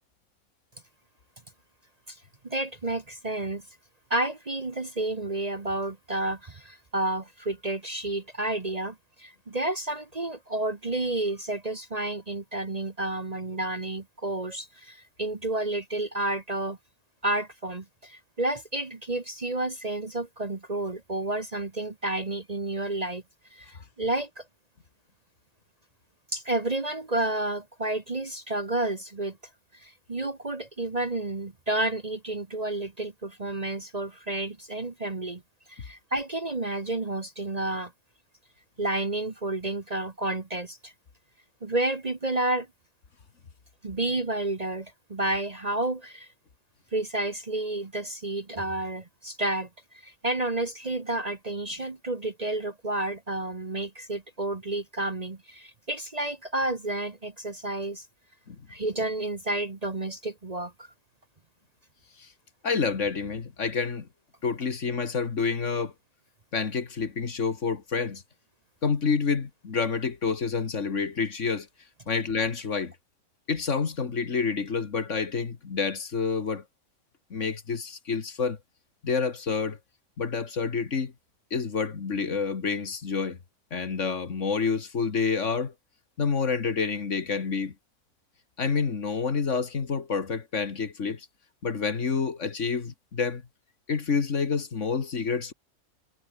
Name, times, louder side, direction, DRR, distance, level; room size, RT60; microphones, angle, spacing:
voice 1, 2.4-3.6 4.1-16.8 17.2-23.2 23.5-24.4 26.3-29.4 29.8-35.4 35.7-37.9 38.8-40.9 41.6-42.7 43.8-46.3 46.9-49.7 50.0-58.0 58.7-60.9, right 2 dB, 30° right, 1.3 m, -30 dB
voice 2, 62.6-64.1 64.4-65.9 66.5-68.2 68.8-71.7 72.1-72.9 73.5-76.6 77.3-78.6 79.0-79.8 80.2-81.1 81.5-83.4 83.7-85.7 86.2-87.7 88.6-91.3 91.6-93.4 93.9-95.5, left 5 dB, 55° left, 2.0 m, -28 dB
omnidirectional pair, 1.5 m